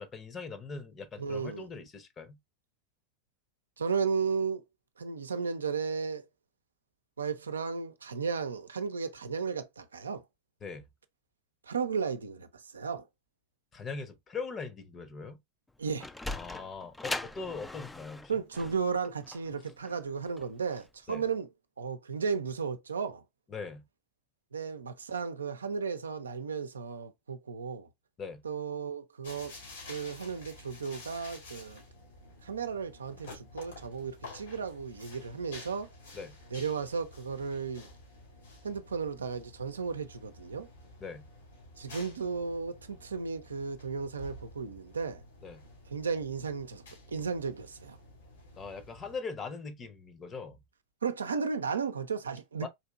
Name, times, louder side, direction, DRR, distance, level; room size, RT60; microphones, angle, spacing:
voice 1, 0.0-2.4 10.6-10.8 13.7-15.4 16.3-18.4 21.1-21.2 23.5-23.8 28.2-28.4 36.1-36.4 41.0-41.3 45.4-45.6 48.6-50.6 52.6-52.7, left 4 dB, 30° left, 0.8 m, -41 dB
voice 2, 1.2-1.7 3.8-4.6 5.0-6.2 7.2-10.2 11.7-13.1 15.8-16.1 18.3-21.5 21.8-23.2 24.5-27.9 28.4-29.6 29.9-31.8 32.4-35.9 36.5-37.9 38.6-40.7 41.8-45.2 45.9-46.8 47.1-48.0 51.0-52.7, right 5 dB, 85° right, 0.5 m, -34 dB
Sliding door, 15.7-20.9, left 2 dB, 10° left, 0.4 m, -40 dB
sound 1, 29.2-49.2, left 2 dB, 80° left, 2.4 m, -51 dB
4.1 x 2.9 x 2.4 m
hypercardioid pair, 95°, 0 cm